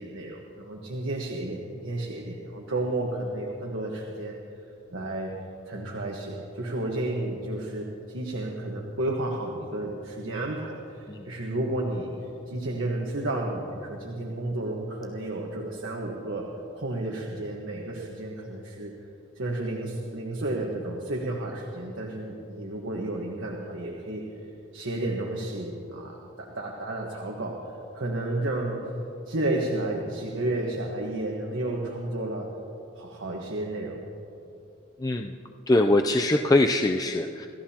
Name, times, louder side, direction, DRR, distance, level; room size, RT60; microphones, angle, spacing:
voice 1, 0.0-4.4 4.9-5.4 5.6-12.1 12.5-16.5 16.7-18.9 19.3-28.8 29.3-32.5 32.9-34.0, right 1 dB, 75° right, -1 dB, 1.4 m, -32 dB
voice 2, 35.0-35.4 35.7-37.5, left 2 dB, 20° left, 4 dB, 0.4 m, -23 dB
27.5 x 14.5 x 2.9 m, 2.7 s
head